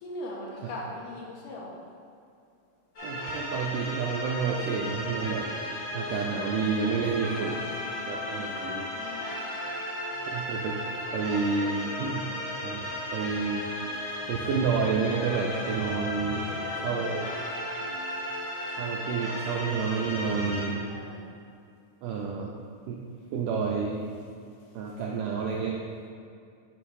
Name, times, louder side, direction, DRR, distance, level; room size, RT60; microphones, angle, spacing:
voice 1, 0.0-1.8 7.1-8.1 8.8-9.4 16.3-17.1 20.8-21.3 26.0-26.1, left 1 dB, 75° left, -3 dB, 2.2 m, -41 dB
sound 1, 3.0-20.7, left 1 dB, 50° left, 1.5 m, -35 dB
voice 2, 3.0-5.5 5.9-7.6 8.1-8.9 10.3-10.8 11.1-12.2 12.6-13.7 14.3-16.5 16.8-17.3 18.8-20.9 22.0-22.5 22.9-23.0 23.3-24.0 24.7-25.8, right 5 dB, 85° right, -1 dB, 1.8 m, -29 dB
7.1 x 3.2 x 4.7 m, 2.4 s
omnidirectional pair, 4.1 m